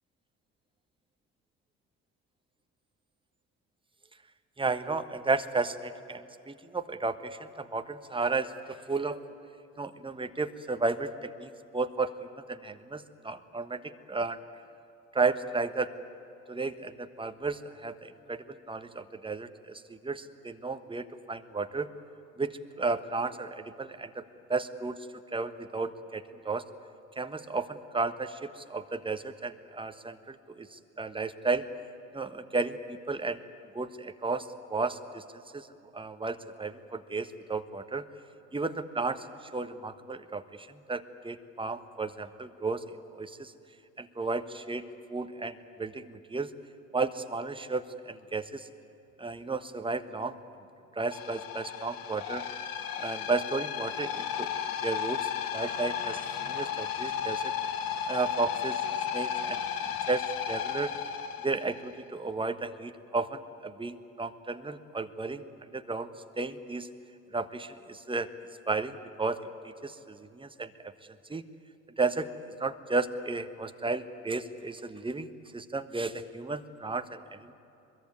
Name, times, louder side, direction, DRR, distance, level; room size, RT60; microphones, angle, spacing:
voice 1, 4.6-9.2 9.8-13.8 14.1-14.4 15.1-15.9 16.5-19.7 20.0-21.9 22.4-24.2 24.5-25.0 25.3-26.6 27.2-31.6 32.1-33.4 33.7-35.2 35.5-35.7 35.9-38.0 38.5-39.2 39.5-42.8 43.1-43.5 44.0-44.8 45.1-46.5 46.9-48.7 49.2-50.3 51.0-52.5 53.0-54.5 54.8-57.4 58.1-58.8 59.1-59.6 60.1-60.9 61.4-65.4 65.7-66.1 66.4-66.9 67.3-68.3 68.7-69.4 69.8-70.7 71.3-71.4 72.0-72.3 72.6-77.2, right 3 dB, 10° right, 9 dB, 1.3 m, -33 dB
sound 1, 51.1-61.9, left 8 dB, 60° left, 1.6 m, -34 dB
23.5 x 22.0 x 9.5 m, 2.7 s
figure-of-eight pair, 50°, 41 cm